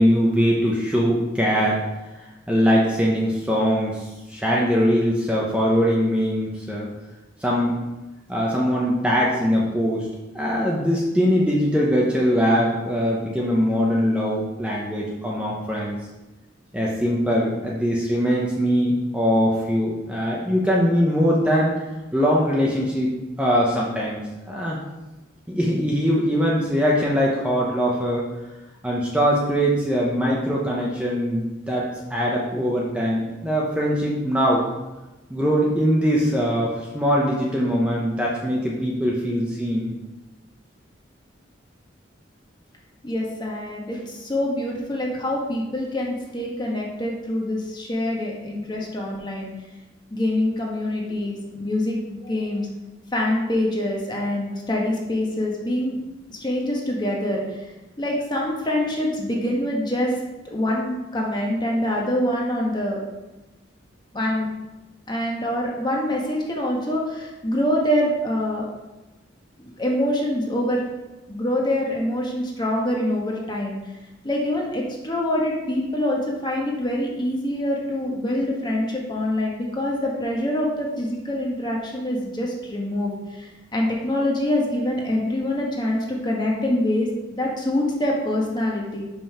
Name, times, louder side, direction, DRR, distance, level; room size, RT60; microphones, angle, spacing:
voice 1, 0.0-1.8 2.5-6.9 7.4-7.8 8.3-10.1 10.3-16.0 16.7-21.7 22.1-23.1 23.4-24.2 24.5-24.8 25.5-28.3 28.8-34.7 35.3-39.9, equal, 5° right, -4 dB, 0.8 m, -21 dB
voice 2, 43.0-49.5 50.1-52.7 53.1-56.0 56.3-57.7 58.0-60.1 60.4-63.0 64.1-64.5 65.1-68.7 69.6-70.8 71.3-73.8 74.2-89.0, left 1 dB, 25° left, -2 dB, 1.3 m, -25 dB
5.5 x 5.4 x 5.5 m, 1.1 s
head